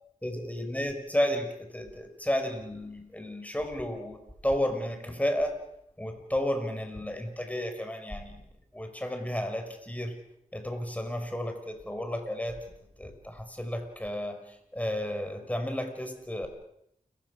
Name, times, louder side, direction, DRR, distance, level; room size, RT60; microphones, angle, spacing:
voice 1, 0.2-5.6 6.0-8.4 8.7-10.2 10.5-12.6 13.0-16.5, left 1 dB, 10° left, 5 dB, 5.8 m, -32 dB
29.0 x 16.0 x 6.6 m, 0.76 s
cardioid pair, 50°, 14 cm